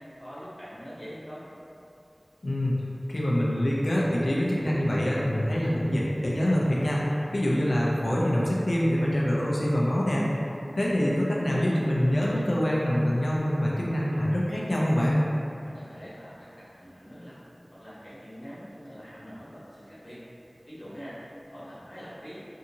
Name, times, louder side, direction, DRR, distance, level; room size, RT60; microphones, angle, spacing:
voice 1, 0.0-1.4 15.6-17.4 17.7-20.2 20.7-22.5, equal, 65° left, -11 dB, 1.0 m, -44 dB
voice 2, 2.4-2.7 3.1-10.3 10.8-15.2, equal, 85° left, -5 dB, 0.4 m, -25 dB
2.7 x 2.6 x 2.7 m, 2.7 s
wide cardioid pair, 40°, 0 cm